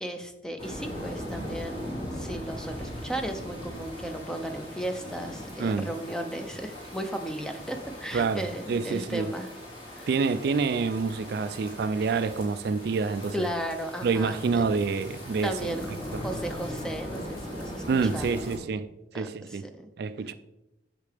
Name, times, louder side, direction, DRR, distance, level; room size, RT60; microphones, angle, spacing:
voice 1, 0.0-9.5 9.9-10.1 13.3-14.7 15.4-17.8 18.1-18.4 19.1-19.9, right 1 dB, 5° left, 0.6 m, -35 dB
sound 1, 0.6-18.6, equal, 30° left, 2.4 m, -39 dB
voice 2, 8.1-8.4 8.7-9.3 10.1-13.5 14.0-15.6 17.9-18.9 19.1-19.7 20.0-20.3, right 4 dB, 55° right, 0.3 m, -27 dB
8.3 x 6.5 x 3.4 m
head